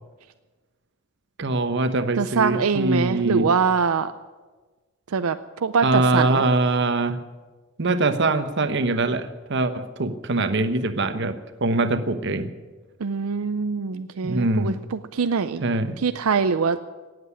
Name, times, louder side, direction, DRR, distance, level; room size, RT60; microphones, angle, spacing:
voice 1, 1.4-3.5 5.8-7.2 7.8-12.5 14.2-14.8 15.6-16.0, right 2 dB, 55° right, 10 dB, 1.0 m, -23 dB
voice 2, 2.2-4.1 5.1-6.4 13.0-15.6 16.0-16.8, right 5 dB, 85° right, 11 dB, 0.5 m, -23 dB
18.0 x 8.0 x 9.8 m, 1.3 s
head